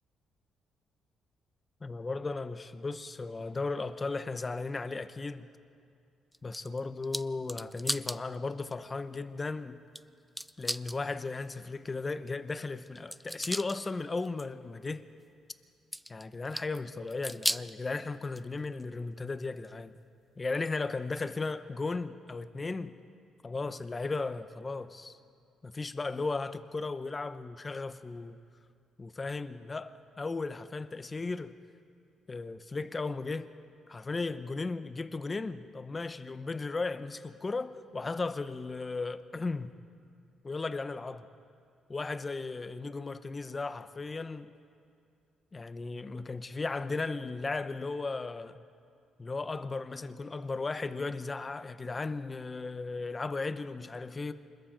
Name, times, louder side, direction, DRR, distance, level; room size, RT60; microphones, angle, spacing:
voice 1, 1.8-5.5 6.4-9.8 10.6-15.0 16.1-20.0 20.4-22.9 23.4-25.2 25.6-28.4 29.0-31.6 32.3-33.5 33.9-39.7 40.4-41.3 41.9-44.5 45.5-48.6 49.2-54.3, left 3 dB, 30° left, 0.9 m, -36 dB
sound 1, 6.3-8.2 8.7-8.8 10.0-10.1 10.4-11.0 12.9-13.8 14.3-14.5 15.9-16.8 17.1-17.7 18.3-19.2 19.6-19.7 20.7-20.8, equal, ahead, 0.4 m, -36 dB
26.5 x 21.5 x 5.2 m
cardioid pair, 90°, 0 cm